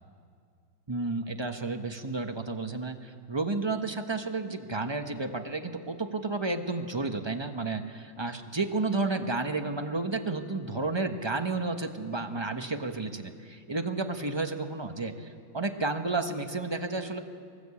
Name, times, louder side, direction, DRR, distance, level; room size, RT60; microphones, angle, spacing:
voice 1, 0.9-15.3 15.5-17.2, right 3 dB, 20° right, 6 dB, 0.7 m, -31 dB
23.5 x 18.5 x 8.4 m, 2.2 s
omnidirectional pair, 2.2 m